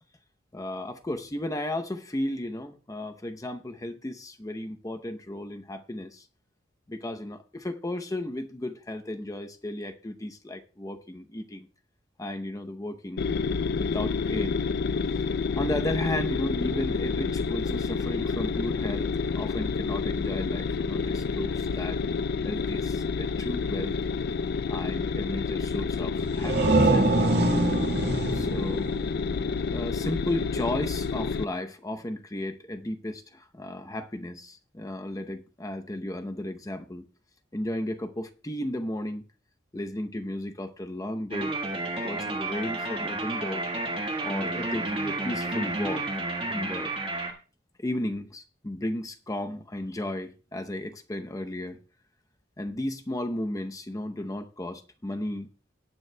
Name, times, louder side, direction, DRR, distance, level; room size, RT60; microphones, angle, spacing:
voice 1, 0.5-6.2 6.9-11.7 12.2-13.2 13.8-14.6 15.6-22.0 22.4-24.0 24.7-27.3 28.3-28.9 29.7-37.0 37.5-39.2 39.7-41.5 42.0-43.6 44.2-46.1 46.5-46.9 47.8-51.8 52.6-55.5, left 1 dB, 20° left, 0.7 m, -34 dB
sound 1, 13.2-31.4, left 5 dB, 60° left, 0.4 m, -29 dB
sound 2, 26.2-29.8, right 2 dB, 60° right, 1.7 m, -25 dB
sound 3, 41.3-47.3, right 2 dB, 30° right, 1.7 m, -31 dB
18.0 x 9.3 x 2.2 m
head